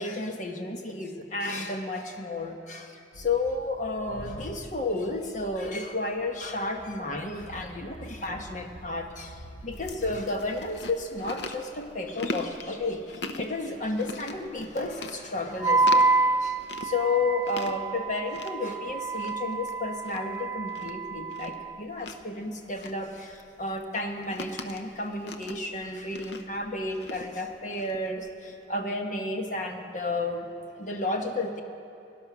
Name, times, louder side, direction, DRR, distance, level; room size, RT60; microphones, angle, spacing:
voice 1, 0.0-30.5 30.7-31.6, left 2 dB, 40° left, 4 dB, 1.2 m, -32 dB
sound 1, 3.1-10.3, equal, 85° left, 1.4 m, -47 dB
Chewing mastication, 9.7-28.6, left 3 dB, 70° left, 0.8 m, -42 dB
Wind instrument woodwind instrument, 15.6-21.8, right 3 dB, 15° right, 0.3 m, -27 dB
18.5 x 11.0 x 6.1 m, 2.7 s
head